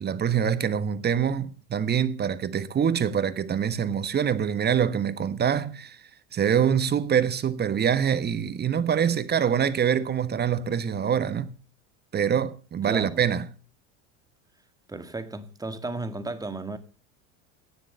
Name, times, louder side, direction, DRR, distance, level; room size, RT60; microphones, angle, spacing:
voice 1, 0.0-6.0 6.3-11.5 12.1-13.4, right 8 dB, 30° right, 1.3 m, -25 dB
voice 2, 12.9-13.2 14.9-16.8, right 2 dB, 10° right, 2.0 m, -34 dB
17.5 x 7.5 x 6.9 m
hypercardioid pair, 95°, 35 cm